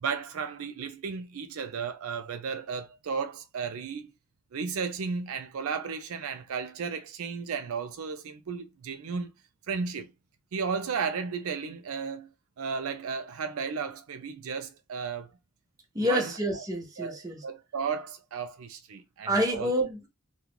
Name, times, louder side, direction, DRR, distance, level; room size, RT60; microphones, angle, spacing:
voice 1, 0.0-4.1 4.5-9.3 9.7-10.1 10.5-12.3 12.6-15.4 16.0-16.3 17.0-19.7, right 5 dB, 70° right, 0.4 m, -34 dB
voice 2, 15.9-17.4 19.3-20.1, equal, 15° right, 1.0 m, -28 dB
3.0 x 2.3 x 3.6 m
head